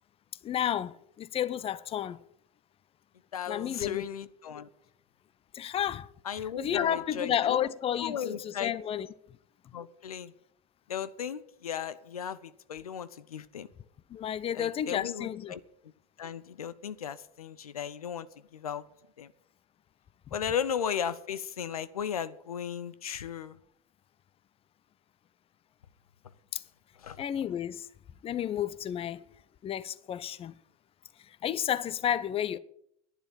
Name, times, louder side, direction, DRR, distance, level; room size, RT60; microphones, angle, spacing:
voice 1, 0.4-2.2 3.5-4.1 5.5-6.1 6.6-9.1 14.1-15.5 20.3-20.4 26.5-26.6 27.2-27.9 28.2-29.3 29.6-30.5 31.4-32.6, left 10 dB, 30° left, 0.7 m, -31 dB
voice 2, 3.3-4.7 6.3-7.7 8.0-8.8 9.7-10.3 10.9-13.7 14.5-15.6 16.2-18.3 18.5-18.8 19.2-19.3 20.3-23.6 27.0-27.2, left 8 dB, 85° left, 0.7 m, -35 dB
11.0 x 10.0 x 8.6 m
hypercardioid pair, 75°, 18 cm